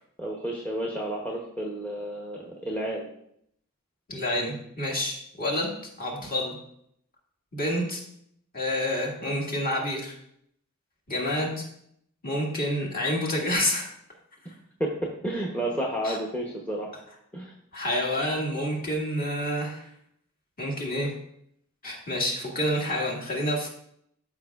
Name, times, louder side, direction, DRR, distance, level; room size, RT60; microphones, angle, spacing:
voice 1, 0.2-3.1 14.8-14.9 15.2-16.9 17.3-17.5, right 1 dB, 5° left, -2 dB, 0.8 m, -31 dB
voice 2, 4.1-6.6 7.5-8.0 8.5-10.1 11.1-11.6 12.2-13.9 16.0-16.2 17.7-19.9 20.6-21.1 21.8-23.7, left 1 dB, 40° left, -2 dB, 1.9 m, -28 dB
13.0 x 5.1 x 2.4 m, 0.71 s
head